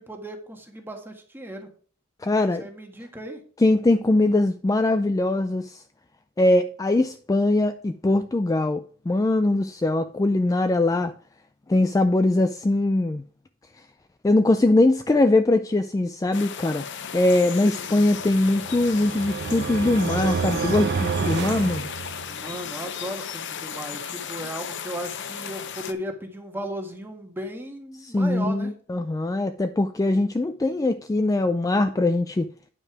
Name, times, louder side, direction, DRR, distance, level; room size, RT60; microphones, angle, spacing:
voice 1, 0.0-1.7 2.6-3.4 17.7-18.2 22.3-28.7, equal, 10° right, 1.5 m, -36 dB
voice 2, 2.2-2.6 3.6-5.8 6.4-11.1 11.7-13.2 14.2-16.8 17.1-21.9 28.0-32.5, left 2 dB, 15° left, 0.3 m, -21 dB
sound 1, 16.3-25.9, left 7 dB, 60° left, 0.7 m, -35 dB
sound 2, 18.2-22.5, right 5 dB, 55° right, 0.5 m, -29 dB
9.6 x 5.4 x 4.8 m
head